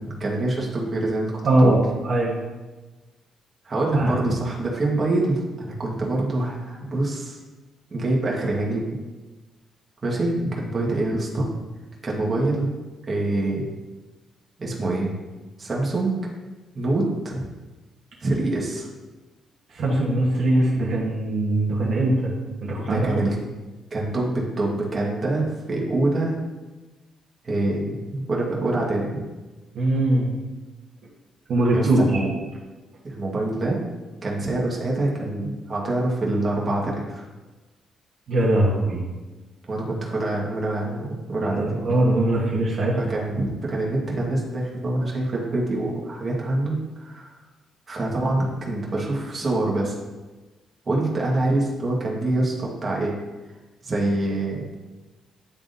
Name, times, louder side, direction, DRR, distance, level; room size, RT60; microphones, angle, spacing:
voice 1, 0.0-1.3 1.6-1.8 3.6-7.4 7.9-8.8 10.0-11.5 12.0-12.7 13.1-13.6 14.6-15.1 15.6-16.2 16.7-17.4 18.2-18.9 22.9-23.4 23.9-26.4 27.4-29.1 31.7-32.3 33.0-33.8 34.2-37.2 39.7-41.8 43.0-47.3 47.9-49.9 50.8-53.1 53.8-54.6, right 2 dB, 35° right, -3 dB, 1.6 m, -25 dB
voice 2, 1.4-2.4 3.9-4.1 19.7-22.3 22.6-23.2 29.7-30.3 31.5-32.1 38.3-39.0 41.5-43.0, right 1 dB, 60° right, -5 dB, 1.2 m, -21 dB
9.8 x 3.6 x 2.7 m, 1.2 s
cardioid pair, 90°, 0 cm